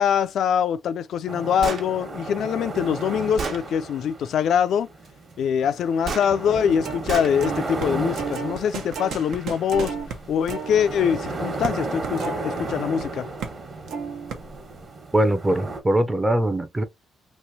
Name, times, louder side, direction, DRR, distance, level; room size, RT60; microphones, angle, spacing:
voice 1, 0.0-4.9 5.4-9.9 10.3-13.3, left 8 dB, 70° left, 0.4 m, -23 dB
sound 1, 1.3-15.8, right 2 dB, 45° right, 1.3 m, -34 dB
Gunshot gunfire, 1.6-1.9 2.8-2.9 3.4-3.6 6.0-6.3 7.1-7.3, right 4 dB, 60° right, 1.1 m, -29 dB
sound 2, 6.8-7.1 7.4-13.0 13.4-13.6 13.9-14.7, right 5 dB, 80° right, 0.9 m, -33 dB
voice 2, 15.1-16.8, right 1 dB, 15° right, 0.6 m, -21 dB
3.1 x 2.9 x 2.7 m
cardioid pair, 90°, 0 cm